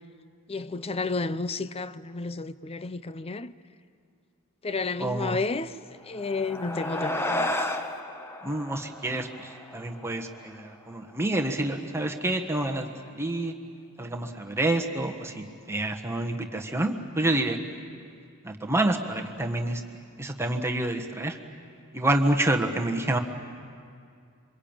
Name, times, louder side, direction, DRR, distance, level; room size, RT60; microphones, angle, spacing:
voice 1, 0.5-3.5 4.6-5.7 6.0-7.5, left 3 dB, 25° left, 0.6 m, -31 dB
voice 2, 5.0-5.4 8.4-12.9 13.1-13.5 14.0-17.6 18.4-19.8 20.2-21.4 21.9-23.2, right 1 dB, 10° right, 1.4 m, -28 dB
sound 1, 6.0-10.8, left 1 dB, 10° left, 1.2 m, -33 dB
27.0 x 24.5 x 9.0 m
head